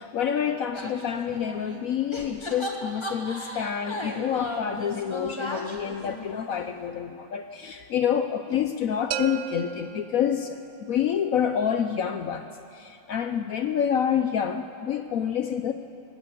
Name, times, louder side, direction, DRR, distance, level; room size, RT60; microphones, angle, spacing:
voice 1, 0.0-15.7, left 8 dB, 75° left, 8 dB, 0.7 m, -28 dB
sound 1, 0.7-1.8 2.1-6.8, left 1 dB, 15° left, 1.3 m, -36 dB
sound 2, 9.1-10.9, right 9 dB, 70° right, 1.2 m, -35 dB
19.5 x 16.5 x 8.4 m, 2.6 s
omnidirectional pair, 2.2 m